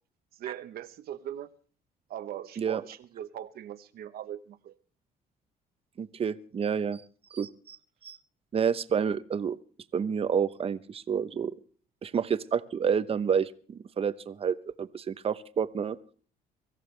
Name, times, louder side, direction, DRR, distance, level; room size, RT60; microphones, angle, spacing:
voice 1, 0.4-1.5 2.1-4.7, right 11 dB, 65° right, 1.0 m, -40 dB
voice 2, 6.0-7.0 7.3-7.8 8.0-8.2 8.5-9.6 9.9-11.5 12.0-16.0, right 7 dB, 35° right, 0.9 m, -29 dB
24.5 x 14.5 x 3.3 m
cardioid pair, 110°, 17 cm